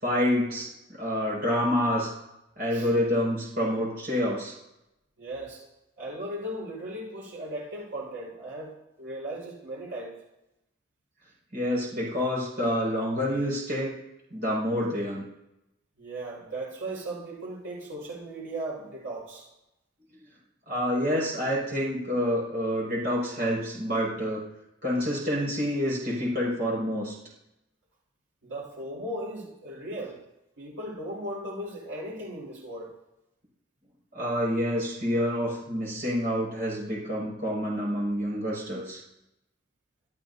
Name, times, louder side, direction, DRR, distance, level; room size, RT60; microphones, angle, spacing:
voice 1, 0.0-2.1 2.6-4.5 11.5-13.9 14.3-15.2 20.7-24.4 24.8-27.1 34.1-39.0, equal, 50° right, -5 dB, 6.0 m, -28 dB
voice 2, 5.2-5.6 6.0-10.1 16.0-19.5 28.4-30.2 30.6-32.9, right 1 dB, 85° right, -5 dB, 5.2 m, -37 dB
25.0 x 13.5 x 2.8 m, 0.89 s
head